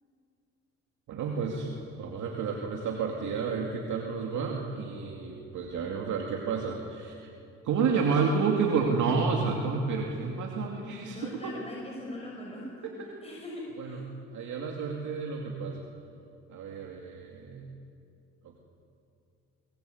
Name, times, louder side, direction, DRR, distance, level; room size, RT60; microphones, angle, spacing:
voice 1, 1.1-7.3 7.6-11.5 12.8-12.9 13.8-14.0 14.3-15.9 16.5-17.6, right 5 dB, 75° right, 0 dB, 2.5 m, -30 dB
voice 2, 10.8-14.0, left 1 dB, 20° left, -3 dB, 6.0 m, -41 dB
23.5 x 20.5 x 8.1 m, 2.5 s
cardioid pair, 90°, 30 cm